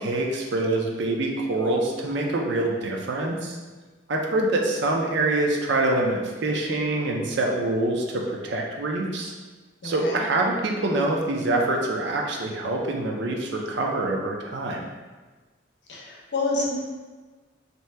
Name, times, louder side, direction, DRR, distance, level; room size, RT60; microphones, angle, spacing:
voice 1, 0.0-3.6 4.1-9.3 9.8-14.9, right 2 dB, 60° right, 0 dB, 0.4 m, -25 dB
voice 2, 9.8-10.3 15.9-16.8, left 2 dB, 60° left, -3 dB, 0.6 m, -28 dB
2.8 x 2.2 x 3.3 m, 1.3 s
head